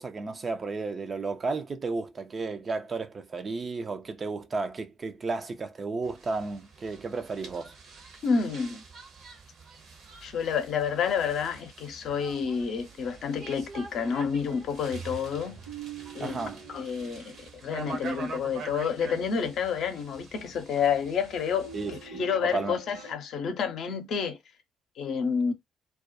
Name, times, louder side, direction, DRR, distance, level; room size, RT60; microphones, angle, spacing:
voice 1, 0.0-7.7 16.2-16.6 21.7-22.8, right 3 dB, 40° right, 0.4 m, -33 dB
sound 1, 6.0-22.1, right 4 dB, 55° right, 0.8 m, -45 dB
voice 2, 8.2-8.8 10.2-15.6 16.1-16.4 16.7-17.4 17.6-24.4 25.0-25.5, left 6 dB, 55° left, 0.6 m, -29 dB
sound 2, 12.9-13.5 13.7-13.8 14.9-18.0 21.6-23.1, right 6 dB, 85° right, 1.1 m, -44 dB
2.3 x 2.1 x 2.6 m
figure-of-eight pair, 45°, 0 cm